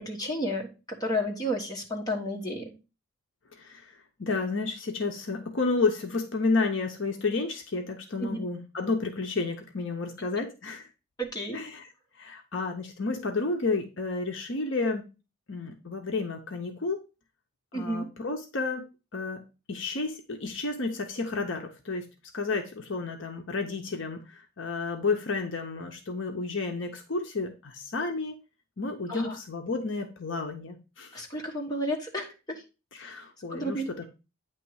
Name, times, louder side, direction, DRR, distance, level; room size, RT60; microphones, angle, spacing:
voice 1, 0.0-2.7 8.2-8.5 11.2-11.6 17.7-18.1 29.1-29.4 31.1-32.6 33.5-33.9, equal, 20° left, -1 dB, 1.3 m, -32 dB
voice 2, 4.2-10.9 11.5-11.8 12.2-15.0 15.5-17.0 17.7-18.8 19.1-19.4 19.7-22.0 22.3-28.4 28.8-31.2 32.9-34.0, left 3 dB, 60° left, 4 dB, 0.8 m, -31 dB
9.0 x 3.1 x 4.7 m, 0.30 s
head